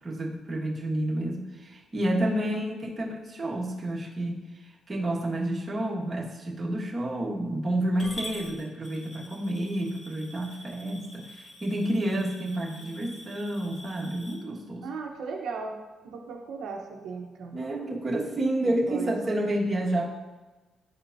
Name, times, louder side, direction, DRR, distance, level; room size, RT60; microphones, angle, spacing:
voice 1, 0.0-4.4 4.9-14.9 17.5-20.1, right 1 dB, 30° right, -4 dB, 1.6 m, -29 dB
voice 2, 2.2-2.5 12.8-12.9 14.8-15.7 16.0-17.6 18.6-19.1, right 4 dB, 80° right, 1 dB, 0.8 m, -37 dB
Coin (dropping) / Glass, 8.0-14.3, left 1 dB, 25° left, 2.2 m, -45 dB
11.5 x 4.4 x 2.7 m, 1.2 s
cardioid pair, 90°, 0 cm